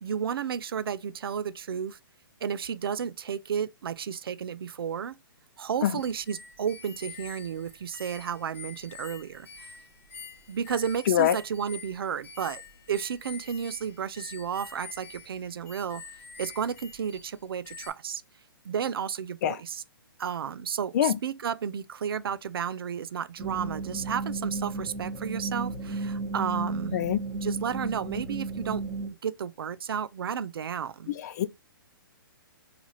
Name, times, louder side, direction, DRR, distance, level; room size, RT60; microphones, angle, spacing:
voice 1, 0.0-2.0 2.4-5.1 5.6-9.7 10.5-12.6 12.9-16.0 16.4-18.2 18.6-19.8 20.2-27.0 27.3-28.8 29.2-31.1, right 7 dB, 75° right, 0.4 m, -32 dB
voice 2, 5.8-5.9 11.1-11.3 19.4-19.5 20.9-21.2 26.9-27.2 31.2-31.4, left 11 dB, 50° left, 0.4 m, -23 dB
sound 1, 6.0-17.4 17.6-17.9, left 4 dB, 15° left, 0.8 m, -47 dB
sound 2, 23.4-29.1, right 3 dB, 5° right, 1.0 m, -34 dB
4.0 x 2.5 x 2.9 m
hypercardioid pair, 145°, 12 cm